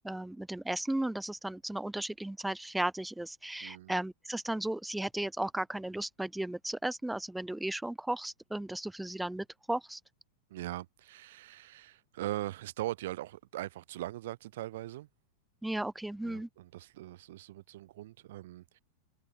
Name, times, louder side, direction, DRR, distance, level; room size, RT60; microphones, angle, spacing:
voice 1, 0.0-10.0 15.6-16.5, right 1 dB, 5° right, 0.3 m, -35 dB
voice 2, 3.6-3.9 10.5-15.1 16.2-18.8, right 15 dB, 55° right, 1.9 m, -40 dB
figure-of-eight pair, 90°, 0 cm